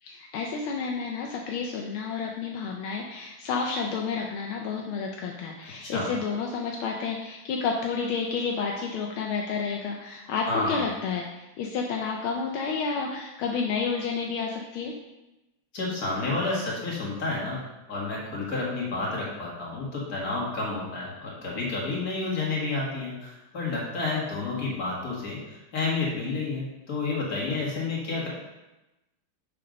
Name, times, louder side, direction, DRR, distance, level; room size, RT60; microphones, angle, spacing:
voice 1, 0.0-14.9, left 5 dB, 80° left, 0 dB, 1.6 m, -30 dB
voice 2, 10.5-10.9 15.7-17.6 17.9-28.3, left 3 dB, 45° left, -4 dB, 2.4 m, -30 dB
6.8 x 5.3 x 5.1 m, 1.0 s
omnidirectional pair, 2.3 m